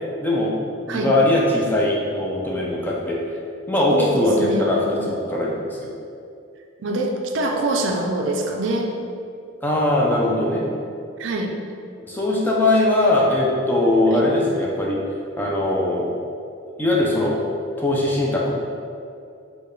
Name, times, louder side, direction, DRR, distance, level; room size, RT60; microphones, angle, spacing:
voice 1, 0.2-0.5 0.9-3.2 3.7-5.9 9.6-10.7 12.0-15.0 15.4-16.1 16.8-17.4 17.8-18.5, left 1 dB, 10° left, -4 dB, 0.3 m, -20 dB
voice 2, 3.9-4.7 5.0-5.1 6.8-8.9 11.2-11.5 14.1-14.3, right 2 dB, 65° right, 2 dB, 0.4 m, -24 dB
4.6 x 2.2 x 3.1 m, 2.5 s
head